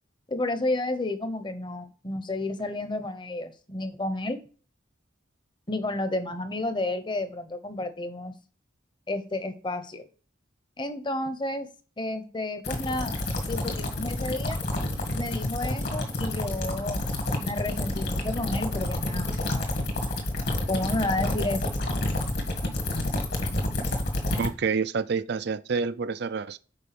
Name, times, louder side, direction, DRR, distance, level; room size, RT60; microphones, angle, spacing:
voice 1, 0.3-4.4 5.7-8.3 9.1-10.0 10.8-11.7 12.0-14.6 15.1-17.0 17.4-19.7 20.7-21.6, left 2 dB, 25° left, 1.0 m, -31 dB
sound 1, 12.6-24.5, left 1 dB, 55° left, 2.0 m, -29 dB
voice 2, 24.4-26.6, right 5 dB, 55° right, 0.5 m, -28 dB
6.6 x 4.8 x 6.0 m
head